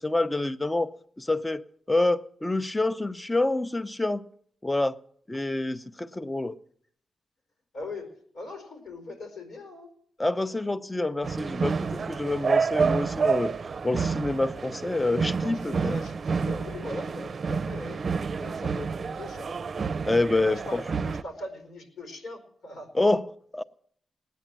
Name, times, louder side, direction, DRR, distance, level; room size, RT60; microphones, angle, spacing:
voice 1, 0.0-4.2 4.6-5.0 5.3-6.6 10.2-13.5 13.8-15.9 20.0-20.6 23.0-23.6, left 2 dB, 20° left, 0.8 m, -27 dB
voice 2, 7.7-9.9 15.4-18.0 18.4-19.6 20.5-22.9, left 2 dB, 85° left, 4.4 m, -40 dB
sound 1, 11.2-21.2, right 5 dB, 60° right, 0.5 m, -29 dB
18.5 x 9.3 x 7.5 m
cardioid pair, 60°, 0 cm